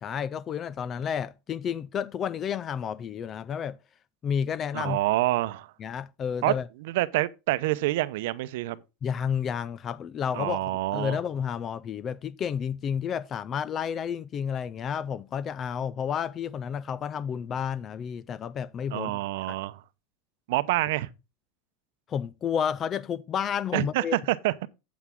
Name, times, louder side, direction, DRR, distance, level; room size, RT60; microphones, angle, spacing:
voice 1, 0.0-3.8 4.2-5.0 5.8-6.6 9.0-10.6 10.9-19.2 19.5-19.6 22.1-24.2, left 8 dB, 25° left, 0.3 m, -31 dB
voice 2, 4.7-5.7 6.4-6.5 6.8-8.8 10.3-11.2 18.9-19.8 20.5-21.1 23.7-24.5, right 17 dB, 70° right, 0.7 m, -27 dB
8.4 x 8.2 x 3.6 m
supercardioid pair, 150°, 0 cm